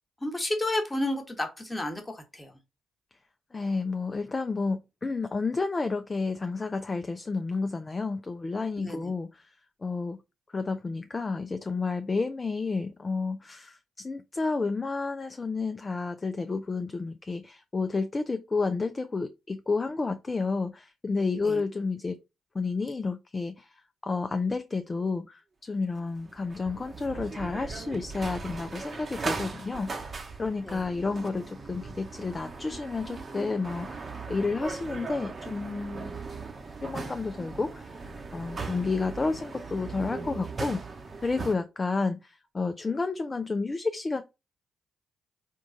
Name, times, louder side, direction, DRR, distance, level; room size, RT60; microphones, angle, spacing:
voice 1, 0.2-2.6 8.8-9.0 21.4-21.6 30.6-30.9, left 1 dB, 15° left, 1.3 m, -31 dB
voice 2, 3.5-10.2 10.5-22.2 22.5-30.1 30.4-36.2 36.8-38.0 38.3-40.8 41.2-44.2, left 4 dB, 35° left, 0.4 m, -31 dB
sound 1, 26.0-41.5, right 4 dB, 45° right, 0.8 m, -39 dB
3.7 x 2.4 x 3.8 m
hypercardioid pair, 45°, 0 cm